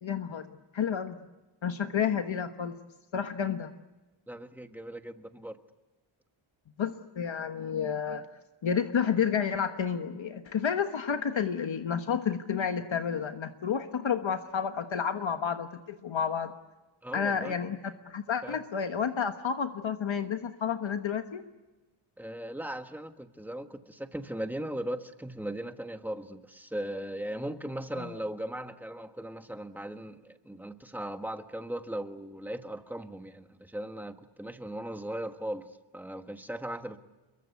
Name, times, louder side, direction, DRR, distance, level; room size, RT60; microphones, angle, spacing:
voice 1, 0.0-1.2 1.6-2.8 3.1-3.7 6.8-8.2 8.6-16.5 17.1-21.4 28.0-28.1, left 7 dB, 65° left, 7 dB, 1.3 m, -30 dB
voice 2, 4.3-5.6 17.0-17.6 18.4-18.6 22.2-37.0, right 1 dB, 5° right, 7 dB, 1.4 m, -38 dB
28.5 x 23.0 x 8.2 m, 1.1 s
wide cardioid pair, 165°, 50 cm